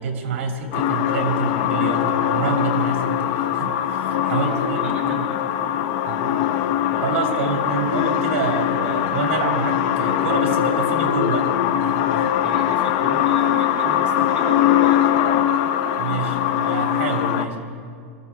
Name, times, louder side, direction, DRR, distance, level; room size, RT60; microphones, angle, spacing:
voice 1, 0.0-5.3 6.0-11.5 11.8-12.3 16.0-17.6, right 4 dB, 65° right, 2 dB, 2.6 m, -27 dB
sound 1, 0.7-17.5, left 11 dB, 40° left, 0.6 m, -21 dB
voice 2, 4.3-5.4 7.3-7.9 12.4-15.3 17.5-17.6, right 2 dB, 15° right, -4 dB, 2.0 m, -35 dB
24.5 x 15.0 x 3.6 m, 2.3 s
supercardioid pair, 170°, 7 cm